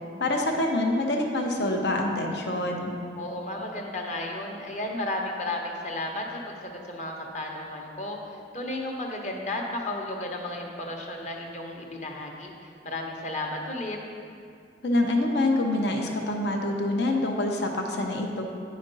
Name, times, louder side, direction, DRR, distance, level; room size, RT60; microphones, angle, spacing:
voice 1, 0.2-2.9 14.8-18.4, left 1 dB, 70° left, 2 dB, 0.8 m, -26 dB
voice 2, 3.2-8.2 8.5-14.0, left 1 dB, 40° left, 1 dB, 1.1 m, -33 dB
9.8 x 5.1 x 5.3 m, 2.4 s
head